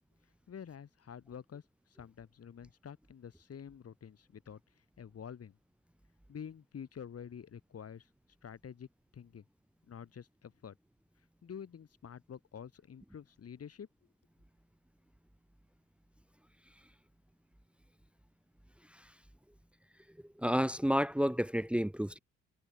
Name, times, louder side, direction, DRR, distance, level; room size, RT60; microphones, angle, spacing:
voice 1, 0.5-5.5 6.3-8.1 8.4-8.9 9.1-9.4 9.9-10.7 11.4-13.9, left 8 dB, 50° left, 6.1 m, -48 dB
voice 2, 20.4-22.2, equal, 5° right, 1.0 m, -30 dB
cardioid pair, 90°, 30 cm